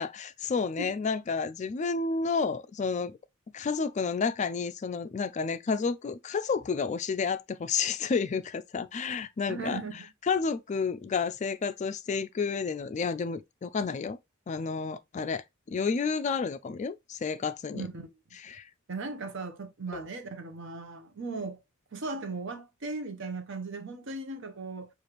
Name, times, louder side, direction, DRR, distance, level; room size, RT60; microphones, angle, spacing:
voice 1, 0.0-3.2 3.5-14.2 14.5-17.9 18.4-18.7 19.9-20.1, left 5 dB, 35° left, 0.3 m, -31 dB
voice 2, 9.5-10.1 17.7-18.1 18.9-21.6 21.9-24.9, right 3 dB, 65° right, 0.8 m, -37 dB
6.6 x 2.5 x 3.0 m
head